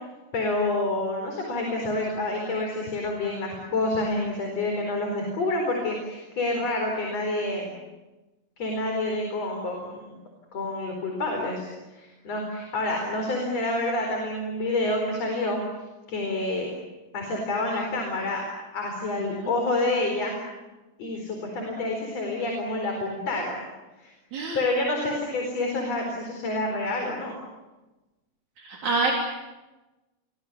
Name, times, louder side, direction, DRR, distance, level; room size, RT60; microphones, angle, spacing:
voice 1, 0.3-7.7 8.6-10.2 10.5-15.6 16.1-16.7 17.1-18.5 18.7-20.5 21.0-23.7 24.0-24.1 24.5-27.4, left 2 dB, 60° left, 2 dB, 5.6 m, -28 dB
voice 2, 28.6-29.1, right 3 dB, 75° right, -2 dB, 5.0 m, -27 dB
29.5 x 24.0 x 7.0 m, 1.1 s
omnidirectional pair, 3.3 m